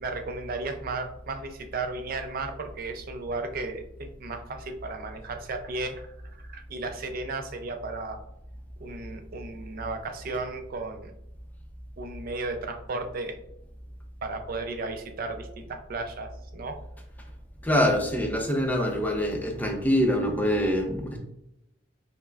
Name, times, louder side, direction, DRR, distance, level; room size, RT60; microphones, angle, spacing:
voice 1, 0.0-6.1 6.4-8.2 8.8-11.1 12.0-13.4 14.2-16.8, right 3 dB, 50° right, 6 dB, 0.4 m, -34 dB
voice 2, 17.6-21.2, equal, 10° left, 2 dB, 0.5 m, -25 dB
5.6 x 2.0 x 2.3 m, 0.80 s
head